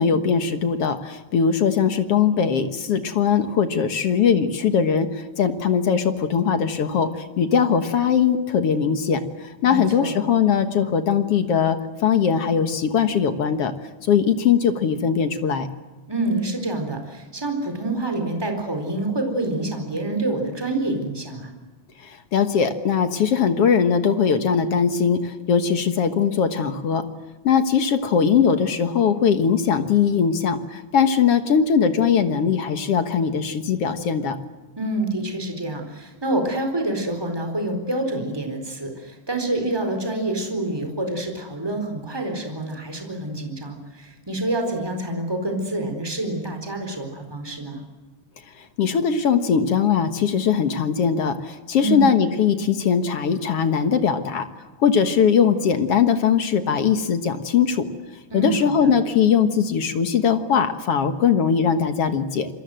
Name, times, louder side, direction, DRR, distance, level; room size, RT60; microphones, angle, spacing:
voice 1, 0.0-13.7 14.1-15.7 22.0-27.1 27.4-34.4 48.8-54.5 54.8-57.9 58.3-62.5, left 7 dB, 55° left, 9 dB, 2.0 m, -20 dB
voice 2, 9.6-10.2 16.1-21.5 34.8-47.8 51.8-52.1 58.3-58.9, right 2 dB, 5° right, 5 dB, 4.0 m, -27 dB
27.5 x 22.5 x 7.8 m, 1.2 s
omnidirectional pair, 3.8 m